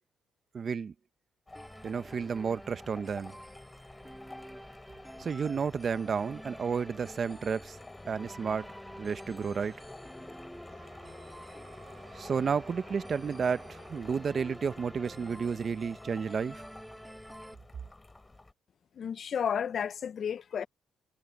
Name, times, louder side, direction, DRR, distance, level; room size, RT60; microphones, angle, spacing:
voice 1, 0.5-0.9 1.8-3.4 5.2-7.8 8.1-8.7 9.0-9.8 12.1-16.6, right 6 dB, 45° right, 1.1 m, -32 dB
sound 1, 1.5-18.5, left 2 dB, 15° left, 4.8 m, -50 dB
sound 2, 1.5-17.5, equal, ahead, 2.1 m, -49 dB
sound 3, 10.6-14.1, right 8 dB, 65° right, 2.6 m, -56 dB
voice 2, 18.9-20.7, left 8 dB, 55° left, 0.7 m, -32 dB
cardioid pair, 90°, 0 cm